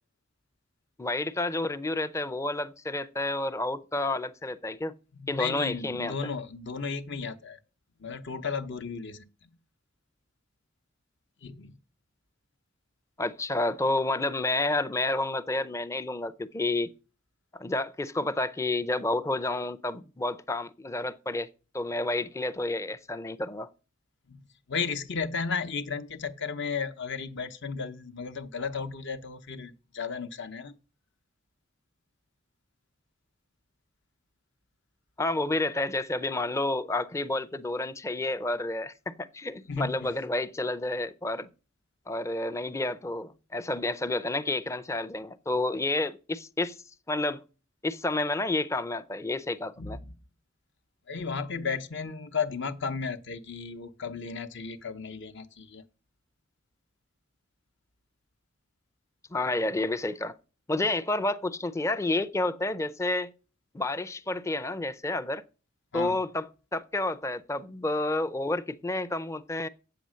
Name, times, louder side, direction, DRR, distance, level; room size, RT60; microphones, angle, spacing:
voice 1, 1.0-4.9 5.3-6.2 13.2-16.9 17.5-21.5 21.7-23.7 35.2-41.5 42.1-46.8 47.1-47.4 47.8-50.0 59.3-60.4 60.7-63.3 63.7-65.4 65.9-69.7, left 2 dB, 15° left, 0.4 m, -30 dB
voice 2, 5.2-7.6 8.0-9.5 11.4-11.8 24.3-24.4 24.7-30.8 39.7-40.1 49.8-50.1 51.1-55.8 65.9-66.2, left 5 dB, 60° left, 0.8 m, -34 dB
8.1 x 6.8 x 6.3 m
head